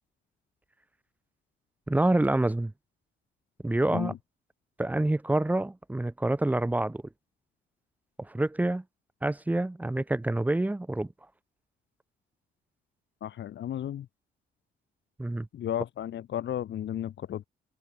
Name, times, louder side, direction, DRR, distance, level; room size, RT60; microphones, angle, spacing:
voice 1, 1.9-2.7 3.6-4.1 4.8-7.0 8.2-8.8 9.2-11.1 15.2-15.5, right 1 dB, 10° right, 0.6 m, -27 dB
voice 2, 13.2-14.1 15.5-17.5, left 11 dB, 65° left, 2.3 m, -33 dB
open air
cardioid pair, 90°, 20 cm